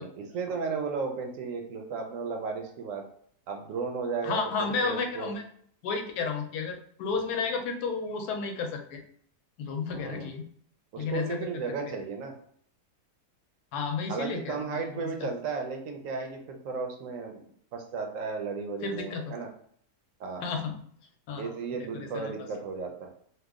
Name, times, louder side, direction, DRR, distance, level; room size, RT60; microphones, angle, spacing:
voice 1, 0.0-3.0 3.5-5.3 9.9-10.3 10.9-12.3 14.1-19.5 20.2-20.5 21.4-23.1, right 4 dB, 65° right, 3 dB, 0.9 m, -34 dB
voice 2, 4.2-5.4 5.8-9.0 9.6-10.4 11.0-11.4 13.7-15.3 18.8-19.2 20.4-20.8 21.3-21.5 21.8-22.3, left 5 dB, 75° left, 4 dB, 1.1 m, -32 dB
3.0 x 2.3 x 3.5 m, 0.62 s
omnidirectional pair, 1.7 m